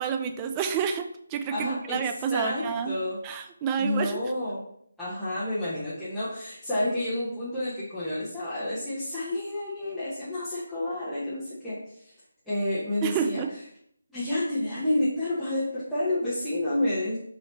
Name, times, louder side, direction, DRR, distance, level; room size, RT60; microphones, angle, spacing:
voice 1, 0.0-2.9 3.2-4.2 13.0-13.5, right 7 dB, 20° right, 7 dB, 0.3 m, -29 dB
voice 2, 1.5-2.0 2.3-3.2 3.8-4.6 5.0-11.8 12.5-13.4 14.1-17.2, left 1 dB, ahead, -15 dB, 1.1 m, -29 dB
5.3 x 3.2 x 3.1 m, 0.68 s
figure-of-eight pair, 155°, 0 cm